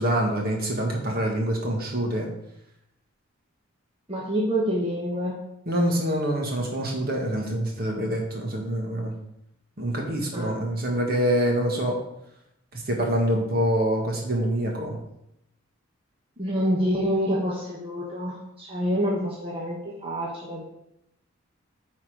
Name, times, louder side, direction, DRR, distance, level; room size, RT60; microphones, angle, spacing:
voice 1, 0.0-2.3 5.7-9.1 9.8-12.0 12.7-15.0, right 1 dB, 45° right, 0 dB, 1.7 m, -25 dB
voice 2, 4.1-5.4 10.3-10.6 16.4-20.6, equal, 25° right, -4 dB, 1.2 m, -27 dB
9.2 x 4.3 x 4.9 m, 0.80 s
head